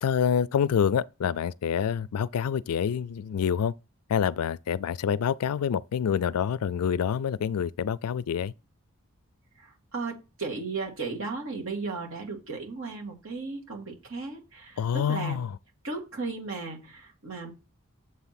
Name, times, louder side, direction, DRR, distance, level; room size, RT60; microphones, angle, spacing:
voice 1, 0.0-3.7 4.1-8.5 14.8-15.5, left 8 dB, 80° left, 0.3 m, -27 dB
voice 2, 9.6-15.4 15.8-17.5, right 4 dB, 65° right, 2.0 m, -35 dB
7.5 x 3.6 x 5.8 m
head